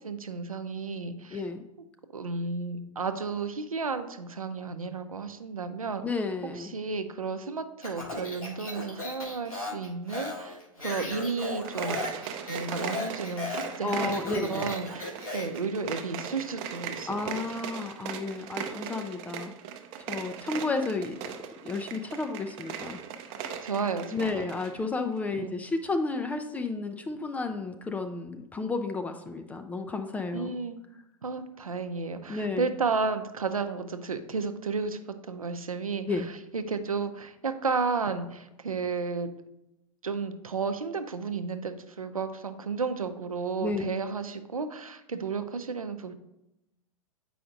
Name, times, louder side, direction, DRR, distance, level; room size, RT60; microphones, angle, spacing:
voice 1, 0.0-1.4 2.1-6.0 6.5-12.0 12.5-17.1 23.6-24.5 25.4-25.6 30.3-30.8 31.2-35.0 35.3-36.1 36.5-39.3 40.0-46.1, right 4 dB, 80° right, 8 dB, 0.6 m, -32 dB
voice 2, 1.3-1.6 6.0-6.7 9.7-9.8 13.8-14.7 17.1-19.5 20.1-21.2 21.6-23.0 24.1-30.5 32.3-32.7 36.1-36.3 43.6-43.9, left 3 dB, 10° left, 7 dB, 0.3 m, -32 dB
Speech, 7.8-15.6, left 2 dB, 80° left, 1.6 m, -36 dB
sound 1, 11.6-24.8, right 8 dB, 35° right, 0.6 m, -39 dB
8.4 x 5.0 x 2.6 m, 0.87 s
figure-of-eight pair, 100°, 18 cm